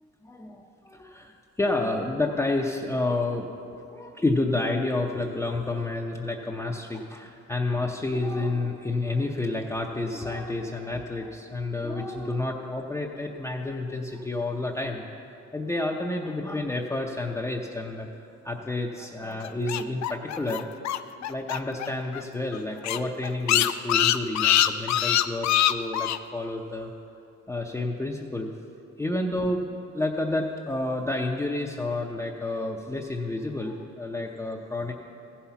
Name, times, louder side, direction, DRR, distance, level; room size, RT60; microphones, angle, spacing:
voice 1, 0.2-3.5 3.7-15.0 15.5-18.1 18.4-20.7 21.2-26.9 27.5-28.5 29.0-34.9, left 2 dB, 10° left, -1 dB, 0.6 m, -30 dB
sound 1, 19.4-21.9 22.1-22.2 22.5-22.6 22.8-26.2, left 12 dB, 65° left, 0.5 m, -23 dB
14.5 x 5.7 x 5.8 m, 2.7 s
cardioid pair, 90°, 30 cm